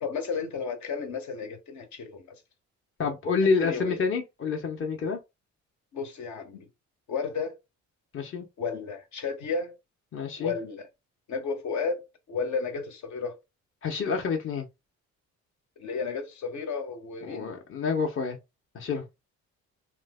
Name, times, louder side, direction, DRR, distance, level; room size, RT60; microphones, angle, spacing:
voice 1, 0.0-2.4 3.6-4.0 5.9-6.7 7.1-7.5 8.6-9.7 10.4-10.9 11.3-13.4 15.8-17.5, left 5 dB, 70° left, 1.0 m, -33 dB
voice 2, 3.0-5.2 8.1-8.4 10.1-10.5 13.8-14.7 17.3-18.4 18.7-19.0, left 5 dB, 45° left, 0.8 m, -28 dB
3.1 x 2.1 x 3.4 m
cardioid pair, 90°, 30 cm